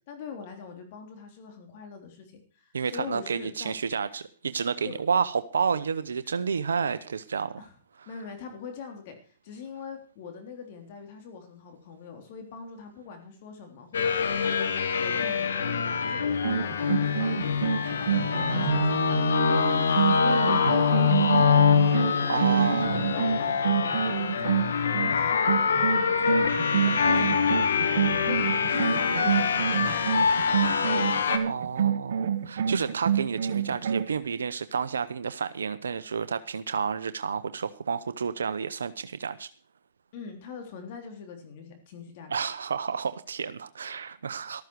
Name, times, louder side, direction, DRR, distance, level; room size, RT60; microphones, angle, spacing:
voice 1, 0.1-3.7 4.8-5.0 7.6-7.7 8.0-9.2 9.4-17.6 17.8-26.5 26.7-30.3 40.1-42.3, left 5 dB, 50° left, 4 dB, 3.5 m, -43 dB
voice 2, 2.7-7.6 14.5-14.6 22.3-23.0 31.4-39.5 42.3-44.6, right 6 dB, 80° right, 12 dB, 0.8 m, -30 dB
sound 1, 13.9-31.4, left 6 dB, 75° left, 1.8 m, -25 dB
sound 2, 16.3-25.1 25.5-34.2, right 8 dB, 65° right, 1.2 m, -28 dB
14.0 x 13.0 x 4.7 m, 0.40 s
hypercardioid pair, 125°, 0 cm